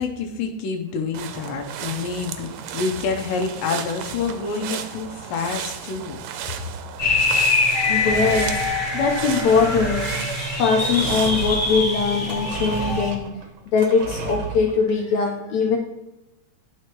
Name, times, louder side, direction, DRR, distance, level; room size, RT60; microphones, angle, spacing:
voice 1, 0.0-6.2, left 5 dB, 85° left, 2 dB, 2.4 m, -27 dB
sound 1, 1.1-11.8, right 9 dB, 90° right, 2.3 m, -34 dB
sound 2, 7.0-13.1, left 3 dB, 35° left, 1.5 m, -24 dB
sound 3, 7.0-14.9, right 5 dB, 65° right, 1.5 m, -34 dB
voice 2, 7.9-8.6 8.9-10.1 10.6-13.4 13.7-15.8, left 5 dB, 70° left, 1 dB, 1.8 m, -21 dB
11.5 x 4.7 x 3.0 m, 1.0 s
omnidirectional pair, 3.8 m